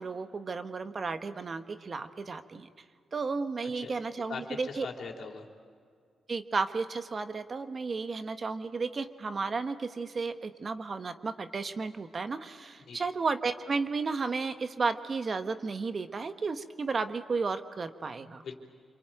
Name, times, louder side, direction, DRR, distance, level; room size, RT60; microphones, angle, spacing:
voice 1, 0.0-2.7 3.1-4.9 6.3-18.4, right 4 dB, 45° right, 9 dB, 1.4 m, -33 dB
voice 2, 4.3-5.4 12.8-13.0 18.4-18.5, left 5 dB, 65° left, 2 dB, 3.3 m, -40 dB
27.0 x 24.0 x 9.1 m, 2.2 s
cardioid pair, 65°, 0 cm